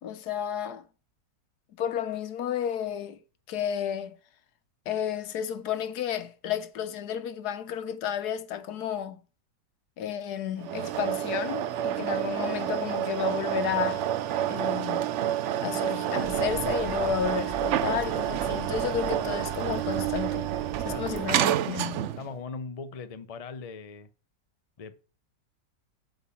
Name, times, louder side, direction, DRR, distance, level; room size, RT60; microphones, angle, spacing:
voice 1, 0.0-0.8 1.8-3.2 3.5-4.2 4.9-9.2 10.0-14.1 14.5-15.1 15.6-20.5 20.8-22.1, left 9 dB, 70° left, 1.2 m, -32 dB
sound 1, 10.6-22.3, right 11 dB, 85° right, 0.6 m, -29 dB
sound 2, 16.2-21.4, right 5 dB, 45° right, 0.8 m, -41 dB
voice 2, 22.2-24.1 24.8-25.0, left 4 dB, 55° left, 0.4 m, -39 dB
8.3 x 3.9 x 7.0 m
omnidirectional pair, 1.9 m